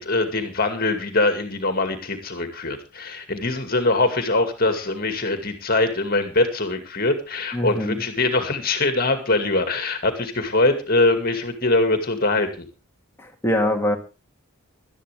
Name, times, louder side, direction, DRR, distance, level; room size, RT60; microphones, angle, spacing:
voice 1, 0.0-12.7, left 2 dB, 45° left, 7 dB, 2.2 m, -22 dB
voice 2, 7.5-8.0 13.2-14.0, left 1 dB, 10° left, 2 dB, 2.2 m, -23 dB
18.5 x 12.5 x 3.4 m, 0.31 s
head